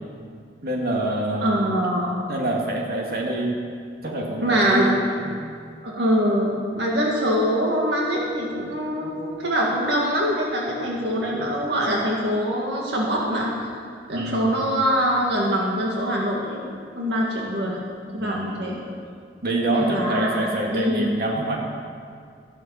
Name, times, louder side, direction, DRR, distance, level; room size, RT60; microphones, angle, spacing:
voice 1, 0.6-1.5 1.8-1.9 2.3-3.6 4.0-5.3 14.1-14.5 18.2-18.6 19.4-21.6, right 1 dB, 55° right, -1 dB, 2.2 m, -26 dB
voice 2, 1.4-2.3 4.4-4.9 5.8-13.8 14.1-16.6 17.0-17.8 18.1-18.8 19.7-21.1, equal, 70° right, -2 dB, 1.9 m, -24 dB
14.0 x 12.0 x 5.7 m, 2.2 s
head